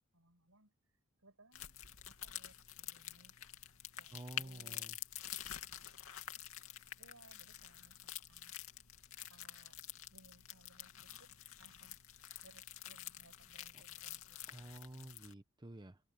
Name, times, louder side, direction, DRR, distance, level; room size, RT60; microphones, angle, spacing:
voice 1, 0.1-0.7 1.2-3.5 4.0-4.9 5.2-6.0 7.0-8.5 9.3-9.8 10.1-11.3 11.6-12.0 12.4-14.4, right 2 dB, 85° right, 6.0 m, -66 dB
sound 1, 1.5-15.3, left 11 dB, 80° left, 2.6 m, -48 dB
voice 2, 4.1-5.0 14.5-16.0, right 1 dB, 20° right, 0.9 m, -51 dB
head